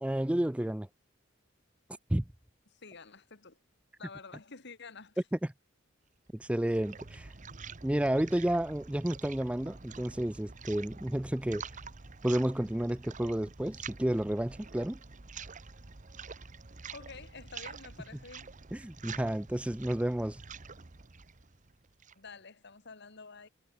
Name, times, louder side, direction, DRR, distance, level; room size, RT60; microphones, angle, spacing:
voice 1, 0.0-0.9 2.1-2.2 6.3-7.3 7.8-11.6 12.2-15.0 18.7-20.4, right 1 dB, 5° right, 0.4 m, -31 dB
voice 2, 2.8-3.6 4.0-5.2 7.3-7.4 16.9-18.5 22.2-23.5, left 4 dB, 60° left, 2.2 m, -49 dB
sound 1, 6.3-22.3, right 5 dB, 40° right, 1.1 m, -47 dB
head